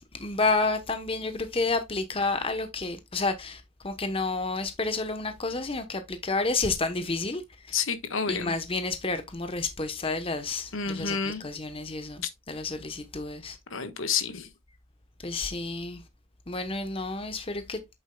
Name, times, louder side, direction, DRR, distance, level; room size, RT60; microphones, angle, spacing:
voice 1, 0.0-7.7 8.3-13.6 15.2-16.0 16.5-17.8, left 3 dB, 25° left, 0.9 m, -30 dB
voice 2, 7.7-8.5 10.7-11.4 13.7-14.5, left 6 dB, 70° left, 1.3 m, -29 dB
8.5 x 7.2 x 2.2 m
head